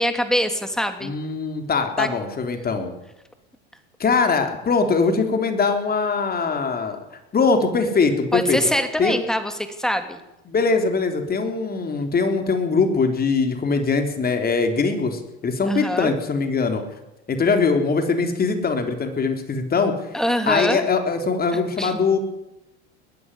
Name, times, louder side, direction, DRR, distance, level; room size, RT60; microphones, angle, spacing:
voice 1, 0.0-1.1 2.0-2.1 8.3-9.5 9.8-10.2 15.7-16.1 20.1-20.8 21.8-22.0, equal, ahead, 7 dB, 2.9 m, -23 dB
voice 2, 1.0-2.9 4.0-7.0 7.3-8.6 9.0-9.2 10.5-16.8 17.3-19.9 20.5-22.2, left 4 dB, 25° left, 6 dB, 3.6 m, -22 dB
20.5 x 13.0 x 9.9 m, 0.93 s
supercardioid pair, 105°, 34 cm